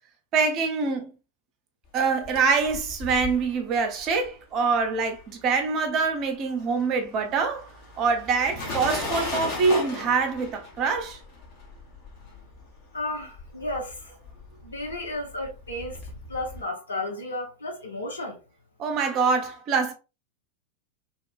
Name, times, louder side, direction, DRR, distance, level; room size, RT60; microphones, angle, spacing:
voice 1, 0.3-1.1 1.9-7.7 8.0-11.2 18.8-19.9, right 4 dB, 35° right, 0.6 m, -25 dB
sound 1, 2.0-5.6 5.9-16.6, left 2 dB, 40° left, 1.0 m, -37 dB
voice 2, 12.9-14.1 14.6-16.0 16.3-18.4, left 1 dB, 75° left, 0.9 m, -33 dB
2.8 x 2.2 x 2.4 m
figure-of-eight pair, 90°, 0 cm